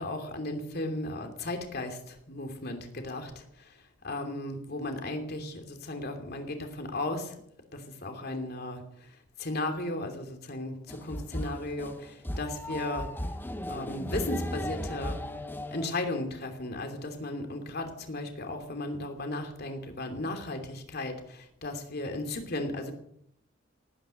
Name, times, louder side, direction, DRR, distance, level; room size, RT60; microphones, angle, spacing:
voice 1, 0.0-7.3 7.7-13.1 13.7-15.2 15.7-22.9, left 2 dB, 55° left, 5 dB, 2.9 m, -35 dB
sound 1, 10.9-15.9, left 1 dB, 10° left, 0.9 m, -36 dB
18.5 x 9.8 x 7.0 m, 0.73 s
head